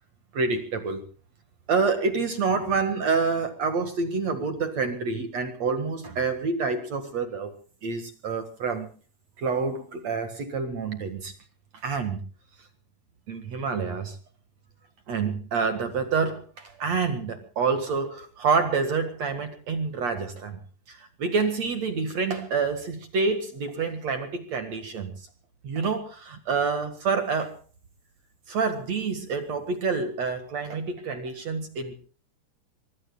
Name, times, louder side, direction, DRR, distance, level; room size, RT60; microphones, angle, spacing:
voice 1, 0.3-1.0 1.7-7.5 7.8-8.9 9.4-11.3 11.8-12.2 13.3-14.2 15.1-20.6 20.9-25.1 25.6-27.5 28.5-32.0, right 4 dB, 55° right, 2.0 m, -27 dB
25.5 x 22.5 x 2.3 m
omnidirectional pair, 5.6 m